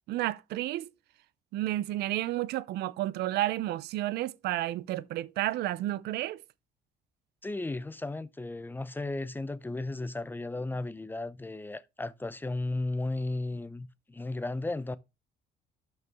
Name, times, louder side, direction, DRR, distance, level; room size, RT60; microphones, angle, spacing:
voice 1, 0.1-0.9 1.5-6.4, right 15 dB, 75° right, 0.5 m, -31 dB
voice 2, 7.4-15.0, left 2 dB, 10° left, 0.6 m, -35 dB
12.0 x 5.5 x 3.5 m
cardioid pair, 110°, 17 cm